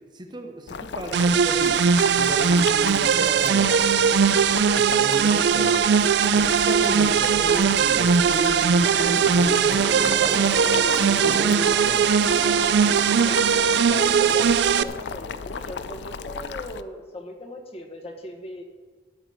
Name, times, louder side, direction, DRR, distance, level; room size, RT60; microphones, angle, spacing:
voice 1, 0.1-4.4 4.7-5.9 6.3-12.0, right 1 dB, 25° right, 4 dB, 1.0 m, -34 dB
Boiling, 0.7-16.8, left 5 dB, 65° left, 0.5 m, -35 dB
sound 1, 1.1-14.8, right 7 dB, 65° right, 0.4 m, -20 dB
sound 2, 8.8-14.2, left 1 dB, 5° left, 1.5 m, -37 dB
voice 2, 13.8-18.7, left 1 dB, 35° left, 2 dB, 1.3 m, -38 dB
13.0 x 6.0 x 7.9 m, 1.5 s
head